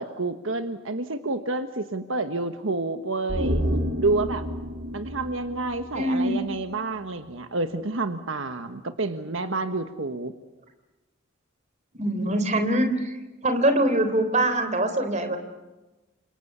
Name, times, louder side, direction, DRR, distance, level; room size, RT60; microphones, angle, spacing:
voice 1, 0.0-3.6 4.0-4.4 4.9-10.3, right 3 dB, 80° right, 8 dB, 1.4 m, -29 dB
sound 1, 3.3-6.7 7.0-7.1, equal, 60° right, 2.5 m, -30 dB
voice 2, 5.9-6.4 11.9-13.1 13.4-15.4, right 1 dB, 35° right, 7 dB, 3.8 m, -23 dB
30.0 x 26.5 x 7.0 m, 1.1 s
head